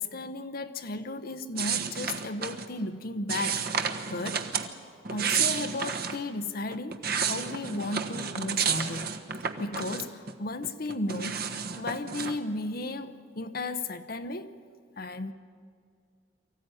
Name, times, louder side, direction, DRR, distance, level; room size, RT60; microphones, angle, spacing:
voice 1, 0.0-3.6 4.1-4.4 4.7-4.8 5.1-9.1 9.6-14.5 15.0-15.3, left 2 dB, 50° left, 9 dB, 0.8 m, -34 dB
sound 1, 1.6-2.7 3.3-4.7 5.0-6.2 6.7-10.3 10.6-12.4, right 6 dB, 55° right, 1.3 m, -31 dB
24.0 x 15.0 x 9.7 m, 2.2 s
head